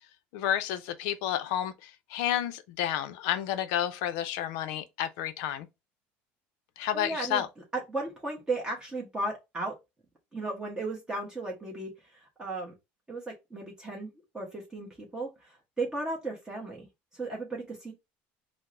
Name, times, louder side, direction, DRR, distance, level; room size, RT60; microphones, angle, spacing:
voice 1, 0.3-5.7 6.8-7.5, left 11 dB, 75° left, 0.5 m, -31 dB
voice 2, 6.9-7.4 7.7-9.7 10.3-12.7 13.1-14.1 14.3-16.9 17.1-17.9, right 2 dB, 15° right, 0.9 m, -35 dB
4.6 x 2.0 x 2.5 m
supercardioid pair, 115°, 5 cm